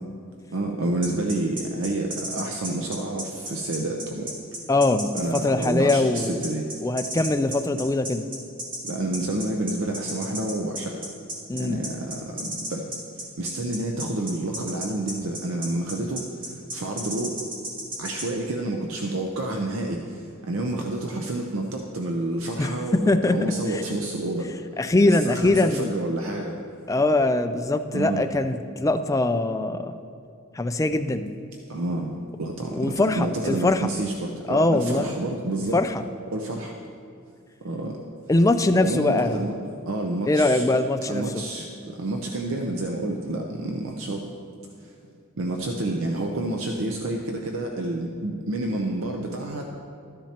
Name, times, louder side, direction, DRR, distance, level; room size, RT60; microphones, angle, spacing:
voice 1, 0.5-4.3 5.1-6.7 8.9-11.0 11.5-13.0 13.4-17.4 18.0-26.6 27.9-28.3 31.7-32.1 32.4-35.8 36.3-36.8 37.6-38.0 38.8-39.6 39.9-40.6 41.1-44.3 44.8-44.9 45.4-49.6, right 2 dB, 65° right, 1 dB, 0.7 m, -29 dB
sound 1, 1.0-18.3, right 1 dB, 40° right, 2.2 m, -33 dB
voice 2, 4.7-6.4 6.8-8.2 11.5-11.8 22.6-23.8 24.8-25.9 26.9-29.9 30.5-31.3 32.7-33.9 34.5-35.1 35.7-36.0 38.3-39.4 40.3-41.4, left 2 dB, 15° left, 8 dB, 0.3 m, -22 dB
13.0 x 10.0 x 2.9 m, 2.5 s
head